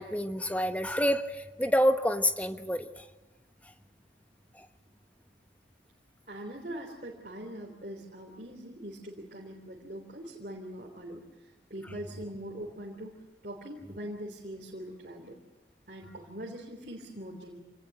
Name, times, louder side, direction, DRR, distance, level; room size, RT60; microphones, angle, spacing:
voice 1, 0.0-3.0 4.6-4.7, equal, 10° left, 8 dB, 1.1 m, -28 dB
voice 2, 6.3-13.2 13.4-15.4 15.9-17.6, right 1 dB, 45° right, -2 dB, 3.4 m, -42 dB
27.0 x 18.5 x 7.9 m, 1.2 s
head